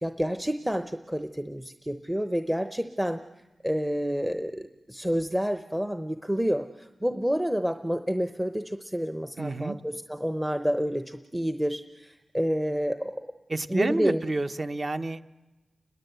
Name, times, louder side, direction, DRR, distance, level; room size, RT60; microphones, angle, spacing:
voice 1, 0.0-3.3 3.6-13.3 13.7-14.2, equal, 5° right, 8 dB, 0.8 m, -29 dB
voice 2, 9.4-9.8 13.5-15.2, right 2 dB, 35° right, 10 dB, 1.0 m, -29 dB
29.5 x 21.0 x 8.1 m, 1.1 s
wide cardioid pair, 125°, 0 cm